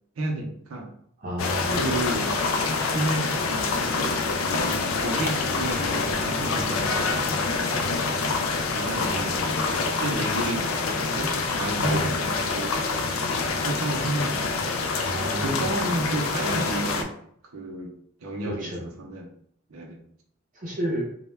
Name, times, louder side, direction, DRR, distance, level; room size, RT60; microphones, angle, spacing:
voice 1, 0.2-0.9 1.8-2.4 2.9-3.7 4.6-7.0 7.8-8.2 8.7-9.4 9.8-12.7 13.4-14.7 15.3-17.1 17.5-17.9 18.2-19.3 19.7-20.0, right 2 dB, 85° right, 1 dB, 0.5 m, -31 dB
voice 2, 1.2-2.0 9.0-9.2 11.9-12.1 15.0-15.6 18.4-18.8 20.6-21.1, equal, 40° right, -4 dB, 0.6 m, -31 dB
sound 1, 1.4-17.0, left 4 dB, 70° left, 0.3 m, -26 dB
2.2 x 2.1 x 3.1 m, 0.66 s
head